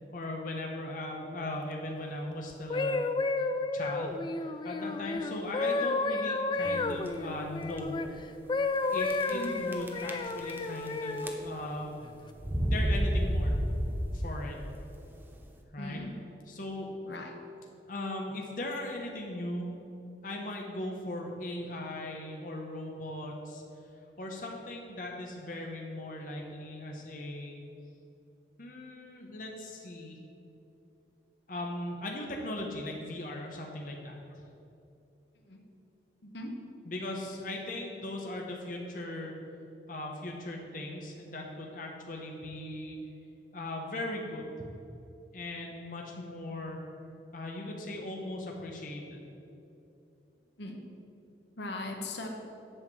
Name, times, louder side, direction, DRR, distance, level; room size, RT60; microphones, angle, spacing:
voice 1, 0.1-3.0 3.7-8.0 8.9-12.0 12.6-13.5 14.1-14.6 15.7-16.0 16.5-16.9 17.9-19.7 20.2-23.6 24.2-27.6 28.6-30.2 31.5-34.2 36.8-39.3 39.9-43.0 43.5-44.7 45.3-46.8 47.3-49.3, left 1 dB, 50° left, 0 dB, 1.0 m, -38 dB
sound 1, 2.5-8.1 8.5-11.4 12.0-12.3, left 3 dB, 25° left, 0.3 m, -32 dB
sound 2, 6.6-7.1 7.7-7.8 8.1-8.2 9.1-9.5 9.7-10.9 11.2-11.7 12.4-14.3, equal, 10° right, 0.7 m, -30 dB
voice 2, 9.3-9.6 15.8-16.2 17.0-17.3 35.4-35.6 36.2-36.6 50.6-50.8 51.6-52.3, left 2 dB, 75° left, 2 dB, 1.1 m, -39 dB
8.0 x 5.8 x 7.6 m, 2.8 s
head